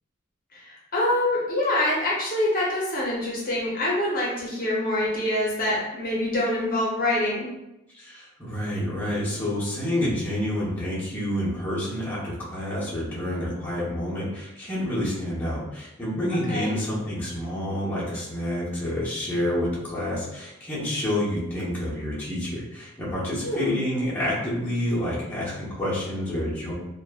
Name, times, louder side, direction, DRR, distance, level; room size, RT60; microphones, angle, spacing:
voice 1, 0.5-7.5 16.5-16.8 23.4-23.7, left 1 dB, 45° left, -6 dB, 0.7 m, -25 dB
voice 2, 7.9-26.7, left 1 dB, 10° left, -9 dB, 0.8 m, -28 dB
2.9 x 2.1 x 2.2 m, 0.90 s
head